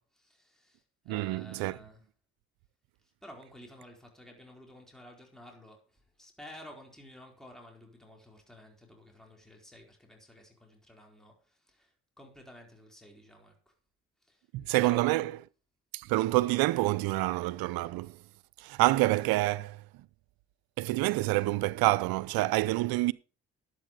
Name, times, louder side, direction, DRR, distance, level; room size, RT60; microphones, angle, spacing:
voice 1, 0.0-2.0 3.0-13.7 14.2-14.5 14.8-15.2, left 1 dB, ahead, 4.3 m, -52 dB
voice 2, 1.1-1.8 14.5-15.3 15.9-18.2 18.6-19.8 20.8-23.1, right 19 dB, 80° right, 0.7 m, -27 dB
11.0 x 8.2 x 5.0 m
supercardioid pair, 55°, 36 cm